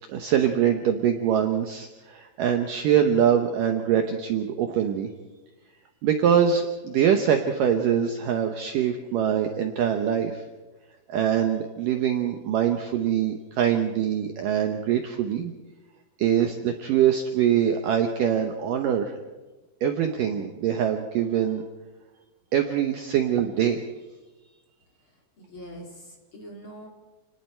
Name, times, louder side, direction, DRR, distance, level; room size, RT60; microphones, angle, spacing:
voice 1, 0.1-5.1 6.0-10.4 11.1-15.5 16.2-19.2 19.8-21.6 22.5-23.8, right 9 dB, 90° right, 5 dB, 1.9 m, -23 dB
voice 2, 25.4-26.9, equal, 35° left, 0 dB, 2.7 m, -43 dB
29.0 x 20.0 x 4.5 m, 1.2 s
omnidirectional pair, 5.4 m